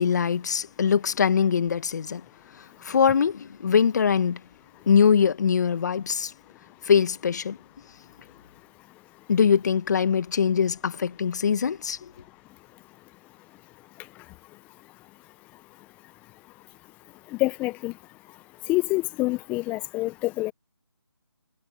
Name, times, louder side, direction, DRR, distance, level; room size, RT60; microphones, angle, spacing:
voice 1, 0.0-2.2 2.6-4.4 4.9-6.3 6.8-7.6 9.3-12.1, left 7 dB, 40° left, 1.5 m, -22 dB
voice 2, 17.4-17.9 18.7-20.5, left 20 dB, 10° left, 0.9 m, -26 dB
figure-of-eight pair, 155°, 14 cm